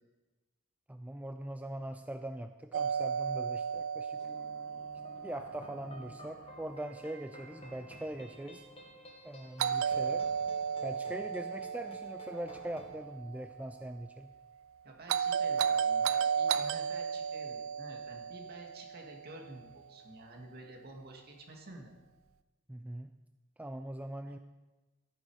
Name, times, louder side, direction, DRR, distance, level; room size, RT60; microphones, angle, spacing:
voice 1, 0.9-4.2 5.2-8.6 9.2-10.3 10.8-14.3 22.7-23.1 23.6-24.4, right 1 dB, 5° right, 7 dB, 0.4 m, -42 dB
Doorbell, 2.7-6.7 9.6-13.8 15.1-19.5, right 7 dB, 70° right, 0.4 m, -34 dB
sound 1, 4.2-10.4, left 2 dB, 60° left, 1.7 m, -58 dB
sound 2, 4.9-13.0, equal, 30° left, 1.6 m, -53 dB
voice 2, 14.8-21.9, right 1 dB, 50° right, 2 dB, 2.2 m, -50 dB
13.0 x 10.0 x 4.9 m, 1.2 s
head